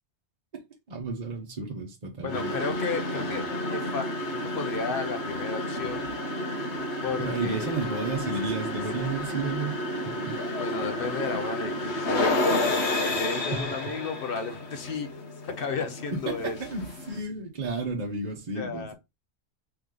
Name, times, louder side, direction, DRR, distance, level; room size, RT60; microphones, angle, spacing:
voice 1, 0.9-2.5 7.2-9.8 10.3-10.4 13.5-13.7 16.1-18.9, right 3 dB, 40° right, 0.9 m, -32 dB
voice 2, 2.2-3.4 3.7-6.1 7.0-7.8 10.6-12.4 13.0-15.1 15.4-16.6 18.6-18.9, left 5 dB, 60° left, 0.8 m, -33 dB
sound 1, 2.3-17.2, left 1 dB, 90° left, 1.3 m, -31 dB
3.5 x 3.1 x 3.7 m
omnidirectional pair, 1.1 m